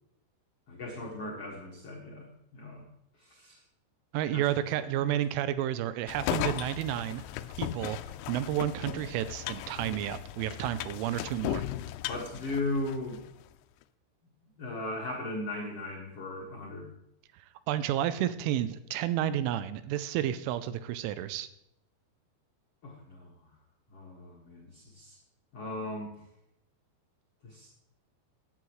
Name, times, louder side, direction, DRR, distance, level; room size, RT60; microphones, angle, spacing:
voice 1, 0.7-2.3 2.5-2.8 3.2-3.5 4.3-5.1 12.1-13.2 14.6-16.9 22.8-23.3 23.9-25.2 25.5-26.1 27.4-27.7, left 2 dB, 70° left, -3 dB, 1.4 m, -37 dB
voice 2, 4.1-7.2 7.6-8.0 8.3-11.6 17.7-21.5, right 12 dB, 85° right, 13 dB, 3.0 m, -31 dB
sound 1, 6.1-13.3, left 14 dB, 90° left, 2.6 m, -37 dB
17.0 x 9.3 x 3.1 m, 0.80 s
omnidirectional pair, 5.8 m